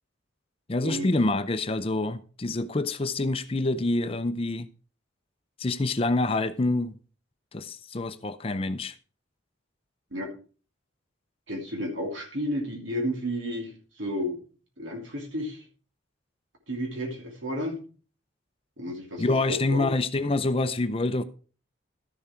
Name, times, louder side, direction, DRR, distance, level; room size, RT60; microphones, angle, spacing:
voice 1, 0.7-4.7 5.6-7.0 7.5-8.9 19.2-21.2, left 2 dB, 30° left, 0.5 m, -26 dB
voice 2, 11.5-14.4 14.8-15.6 16.7-17.8 18.8-19.9, equal, 75° right, 2.8 m, -32 dB
12.5 x 7.2 x 4.5 m
head